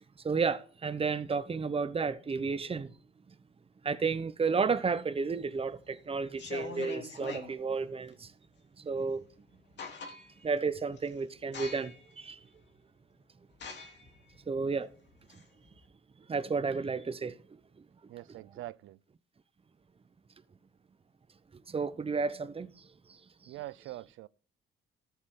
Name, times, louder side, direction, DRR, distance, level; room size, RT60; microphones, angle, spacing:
voice 1, 0.2-2.9 3.3-3.4 3.8-8.3 8.8-9.2 10.4-12.4 14.5-14.9 16.3-17.4 21.7-22.7 23.4-23.5, right 5 dB, 30° right, 1.0 m, -32 dB
sound 1, 5.3-5.8 6.3-7.5 9.1-9.2 9.5-10.5 10.9-11.1 11.5-12.1 12.6-12.7 13.5-15.8, left 5 dB, 60° left, 2.9 m, -43 dB
voice 2, 18.1-19.0 23.5-24.3, right 15 dB, 85° right, 0.6 m, -44 dB
13.5 x 7.2 x 3.9 m
cardioid pair, 90°, 20 cm